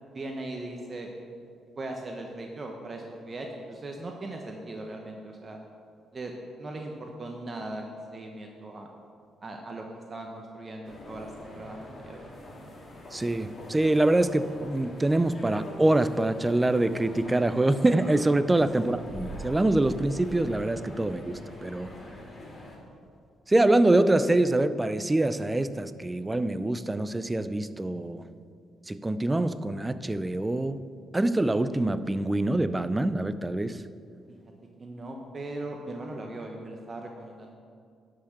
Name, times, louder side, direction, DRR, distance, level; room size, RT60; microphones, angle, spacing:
voice 1, 0.1-1.1 1.7-5.6 6.1-6.3 6.6-8.9 9.4-9.8 10.1-12.3 18.8-18.9 34.8-37.5, right 2 dB, 35° right, 2 dB, 1.0 m, -39 dB
sound 1, 10.8-22.8, left 1 dB, 35° left, 2.4 m, -43 dB
voice 2, 13.1-21.9 23.5-28.2 28.9-30.8 31.1-33.8, right 2 dB, 15° right, 13 dB, 0.5 m, -25 dB
11.0 x 5.8 x 6.6 m, 2.3 s
cardioid pair, 90°, 0 cm